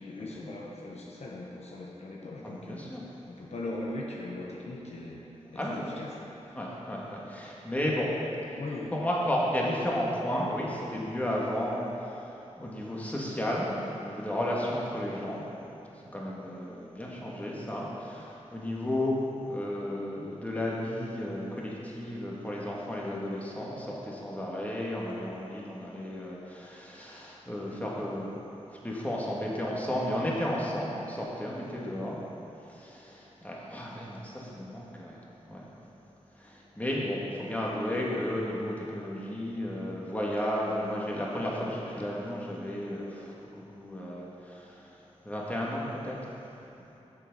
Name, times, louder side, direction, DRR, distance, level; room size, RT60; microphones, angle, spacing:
voice 1, 0.0-2.9 3.3-6.6 8.6-8.9, left 2 dB, 60° left, -3 dB, 1.0 m, -40 dB
voice 2, 2.4-3.1 5.5-5.9 6.5-8.6 8.9-15.5 15.9-28.3 28.7-32.2 32.6-35.9 36.2-46.3 46.8-46.9, left 1 dB, 10° left, -5 dB, 1.7 m, -33 dB
7.1 x 6.9 x 5.4 m, 3.0 s
wide cardioid pair, 70°, 12 cm